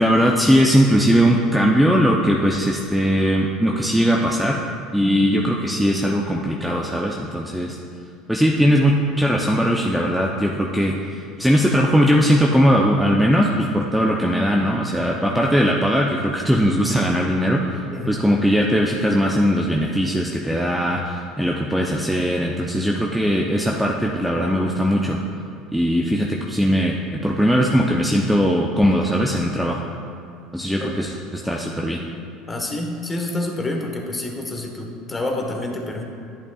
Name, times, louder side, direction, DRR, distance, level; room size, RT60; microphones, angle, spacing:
voice 1, 0.0-4.6 4.9-7.8 8.3-25.2 25.7-29.8 30.5-32.0, equal, 5° right, -1 dB, 0.7 m, -19 dB
voice 2, 32.5-36.0, left 2 dB, 20° left, 2 dB, 1.3 m, -28 dB
10.5 x 8.3 x 2.4 m, 2.4 s
hypercardioid pair, 80°, 0 cm